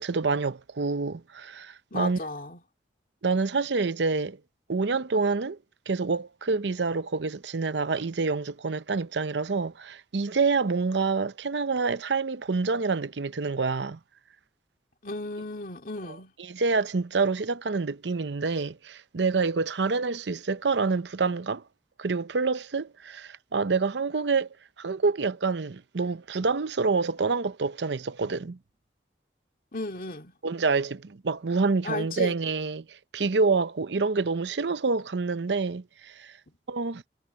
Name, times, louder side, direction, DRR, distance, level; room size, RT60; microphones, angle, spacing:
voice 1, 0.0-2.2 3.2-4.4 4.7-5.6 5.9-14.0 16.1-21.6 22.0-24.5 24.8-28.6 30.4-32.9 33.1-36.3 36.7-37.0, right 4 dB, 85° right, 0.7 m, -27 dB
voice 2, 1.9-2.6 15.0-16.3 29.7-30.3 31.8-32.4, left 2 dB, 50° left, 2.5 m, -34 dB
head